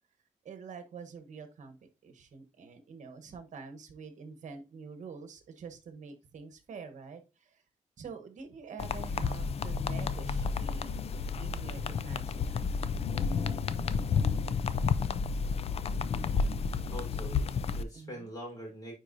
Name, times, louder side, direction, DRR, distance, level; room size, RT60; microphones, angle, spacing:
voice 1, 0.4-7.6 8.0-10.9 11.4-13.0 13.3-13.5 17.9-18.3, right 5 dB, 70° right, 1.0 m, -47 dB
sound 1, 8.8-17.8, left 5 dB, 50° left, 0.4 m, -31 dB
voice 2, 16.8-18.9, equal, 30° left, 3.8 m, -44 dB
9.5 x 4.4 x 2.6 m
wide cardioid pair, 150°, 13 cm